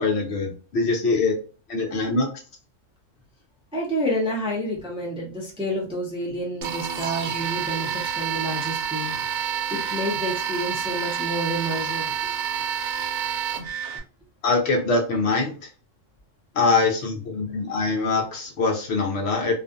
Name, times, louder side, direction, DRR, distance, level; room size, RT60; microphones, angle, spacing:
voice 1, 0.0-1.4 1.7-2.3 14.4-15.5 16.5-19.5, left 3 dB, 65° left, 1 dB, 0.9 m, -23 dB
voice 2, 3.7-12.1 17.7-17.8, equal, 5° right, -4 dB, 0.5 m, -29 dB
sound 1, 6.6-14.0, right 8 dB, 70° right, 0.9 m, -28 dB
2.4 x 2.4 x 2.4 m, 0.36 s
omnidirectional pair, 1.3 m